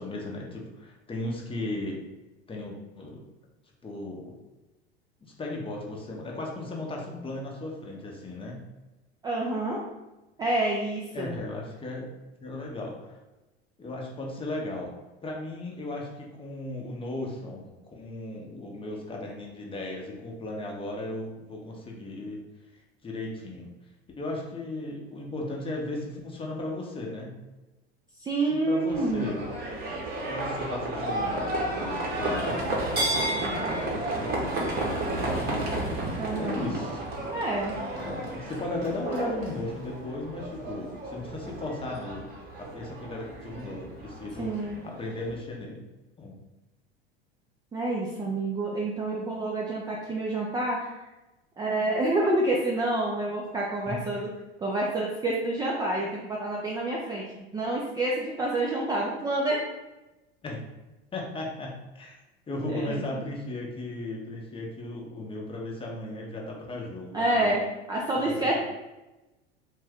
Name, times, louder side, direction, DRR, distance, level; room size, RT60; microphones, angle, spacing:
voice 1, 0.0-2.0 2.5-3.2 3.8-4.3 5.4-8.6 11.1-12.1 12.4-13.2 13.8-14.9 15.2-22.4 22.7-23.7 24.2-27.4 28.5-29.5 30.2-35.7 36.4-37.0 37.9-42.2 42.6-44.5 44.8-45.8 46.2-46.3 53.9-54.0 60.4-60.6 61.1-62.1 62.5-67.5 68.2-68.5, left 2 dB, 15° left, -1 dB, 0.7 m, -36 dB
voice 2, 9.2-9.8 10.4-11.3 28.2-29.3 36.2-36.7 37.3-37.7 44.4-44.8 47.7-51.1 51.6-54.3 54.6-59.6 62.7-63.2 67.1-68.5, right 2 dB, 15° right, -3 dB, 0.3 m, -28 dB
Livestock farm animals working animals, 28.9-45.3, right 1 dB, 30° right, 0.9 m, -32 dB
2.6 x 2.2 x 3.4 m, 1.0 s
hypercardioid pair, 85°, 32 cm